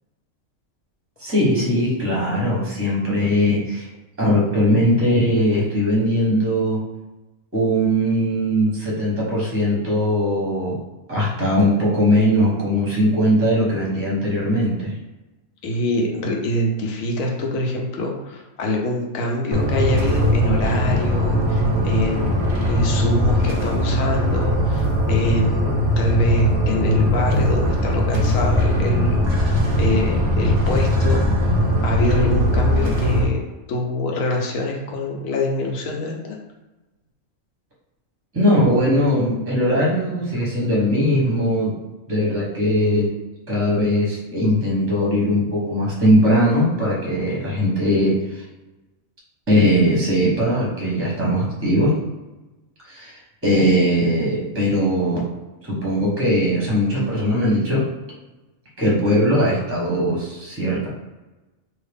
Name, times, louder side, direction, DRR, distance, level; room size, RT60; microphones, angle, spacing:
voice 1, 1.2-3.9 4.2-6.8 7.5-10.8 11.1-14.9 38.3-41.8 42.1-43.1 43.5-48.4 49.5-52.0 52.9-55.3 55.6-57.8 58.8-60.9, equal, 10° right, -5 dB, 0.9 m, -20 dB
voice 2, 15.6-22.4 22.7-31.6 31.8-33.4 33.7-36.4, left 1 dB, 75° left, 0 dB, 1.1 m, -24 dB
sound 1, 19.5-33.2, equal, 50° right, 0.3 m, -20 dB
2.9 x 2.8 x 3.4 m, 1.1 s
omnidirectional pair, 1.4 m